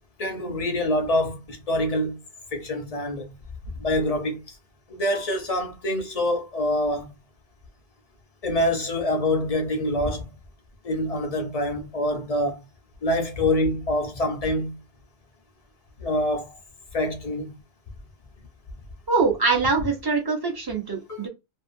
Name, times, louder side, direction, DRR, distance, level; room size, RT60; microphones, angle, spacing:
voice 1, 0.2-2.2 2.5-3.3 3.7-4.6 4.9-7.1 8.4-10.2 10.8-12.6 13.0-14.8 16.0-16.6 16.9-17.6 21.1-21.3, left 1 dB, 40° left, 0.6 m, -25 dB
voice 2, 19.1-21.3, right 4 dB, 25° right, 0.6 m, -23 dB
2.6 x 2.4 x 2.5 m
omnidirectional pair, 1.1 m